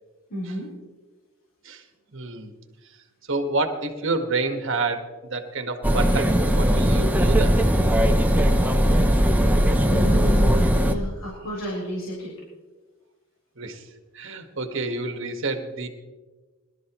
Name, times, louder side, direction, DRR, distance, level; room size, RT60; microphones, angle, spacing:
voice 1, 0.3-0.7 9.8-12.3, left 1 dB, 65° left, -6 dB, 4.1 m, -31 dB
voice 2, 2.1-2.5 3.3-7.5 13.6-13.8 14.1-15.9, right 3 dB, 60° right, 6 dB, 1.6 m, -28 dB
sound 1, 5.8-10.9, equal, 10° right, 0.7 m, -19 dB
22.5 x 12.5 x 3.1 m, 1.3 s
head